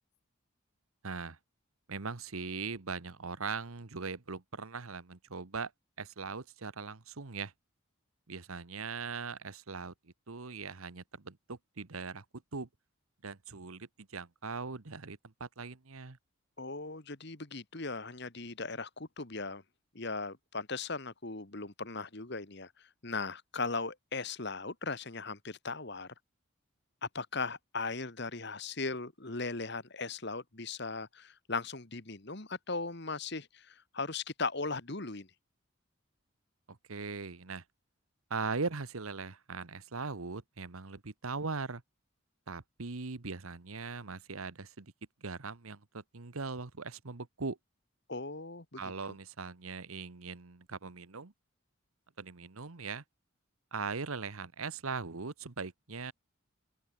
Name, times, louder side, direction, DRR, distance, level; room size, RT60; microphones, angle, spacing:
voice 1, 1.0-1.4 1.9-5.7 6.0-7.5 8.3-9.9 10.3-12.2 12.5-12.7 13.2-16.2 36.7-37.6 38.3-41.8 42.5-44.9 45.2-47.6 48.8-51.3 52.2-53.0 53.7-56.1, right 4 dB, 80° right, 1.2 m, -40 dB
voice 2, 16.6-19.6 20.0-22.7 23.0-26.1 27.0-35.3 48.1-48.9, left 3 dB, 50° left, 1.8 m, -38 dB
open air
head